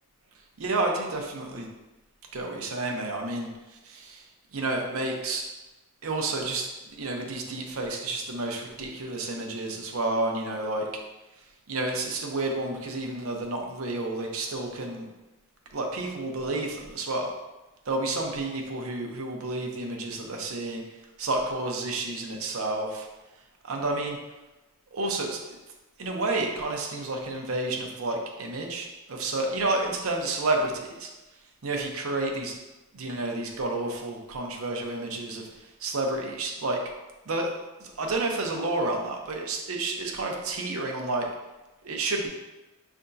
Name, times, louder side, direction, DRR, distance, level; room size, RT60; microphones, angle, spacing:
voice 1, 0.6-1.7 2.3-3.5 3.8-4.2 4.5-5.4 6.0-6.7 7.0-10.9 11.7-15.1 15.7-17.3 17.9-20.8 21.2-23.1 23.6-24.2 24.9-25.4 26.0-31.1 31.6-32.5 32.9-35.4 35.8-36.8 37.3-37.5 37.8-41.3 41.8-42.3, right 2 dB, 70° right, 1 dB, 0.7 m, -30 dB
5.5 x 3.4 x 2.6 m, 1.1 s
head